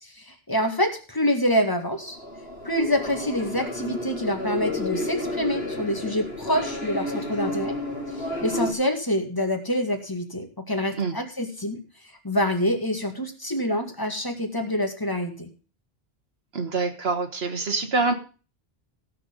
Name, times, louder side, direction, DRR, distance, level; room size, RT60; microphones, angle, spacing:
voice 1, 0.0-2.2 2.6-7.7 8.2-11.8 12.2-15.5, equal, 20° left, 4 dB, 2.1 m, -26 dB
sound 1, 1.9-8.7, left 1 dB, 75° left, 3.4 m, -31 dB
voice 2, 16.5-18.1, right 3 dB, 85° right, 4 dB, 1.7 m, -25 dB
16.0 x 6.8 x 5.3 m, 0.36 s
omnidirectional pair, 1.0 m